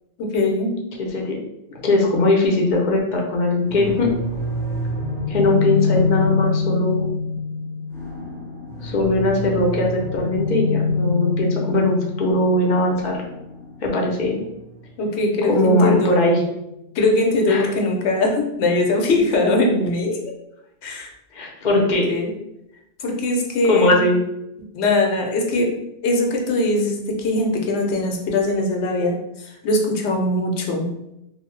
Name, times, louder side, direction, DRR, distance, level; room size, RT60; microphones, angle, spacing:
voice 1, 0.2-0.7 15.0-16.3 16.9-20.3 20.8-21.1 22.1-22.3 23.0-24.0 24.7-25.7 26.0-30.9, left 2 dB, 75° left, 1 dB, 0.9 m, -21 dB
voice 2, 1.0-1.4 1.8-4.1 5.3-7.1 8.8-13.2 13.8-14.4 15.5-16.4 17.5-17.7 21.3-22.1 23.7-24.2, left 2 dB, 55° left, 0 dB, 0.6 m, -20 dB
sound 1, 3.7-16.4, left 3 dB, 5° left, 0.6 m, -26 dB
2.6 x 2.0 x 3.0 m, 0.86 s
omnidirectional pair, 1.1 m